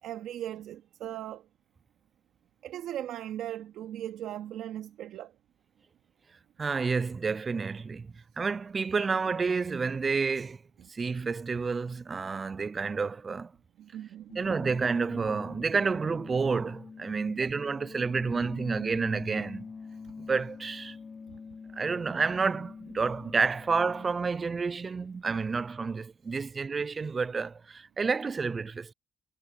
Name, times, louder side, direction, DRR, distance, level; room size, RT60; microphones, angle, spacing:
voice 1, 0.0-1.5 2.6-5.3 10.8-10.9 13.8-14.5 17.3-17.5 20.0-20.1 21.3-21.4, right 12 dB, 80° right, 2.1 m, -38 dB
voice 2, 6.6-10.6 10.9-13.5 14.4-19.7 20.2-21.0 21.7-28.9, right 4 dB, 35° right, 0.3 m, -30 dB
sound 1, 14.3-24.3, left 5 dB, 40° left, 5.2 m, -45 dB
cardioid pair, 90°, 0 cm